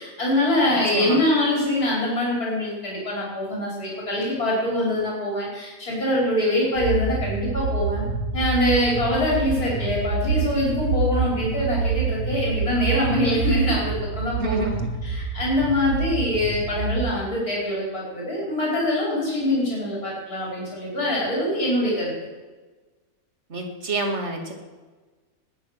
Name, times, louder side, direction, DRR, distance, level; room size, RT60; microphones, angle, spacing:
voice 1, 0.0-8.0 8.3-14.8 15.0-22.1, left 1 dB, 90° left, -5 dB, 5.2 m, -24 dB
sound 1, 6.8-17.2, right 4 dB, 85° right, 1.8 m, -27 dB
voice 2, 14.4-14.9 23.5-24.5, right 2 dB, 50° right, 3 dB, 2.7 m, -28 dB
20.5 x 9.7 x 6.5 m, 1.3 s
omnidirectional pair, 1.5 m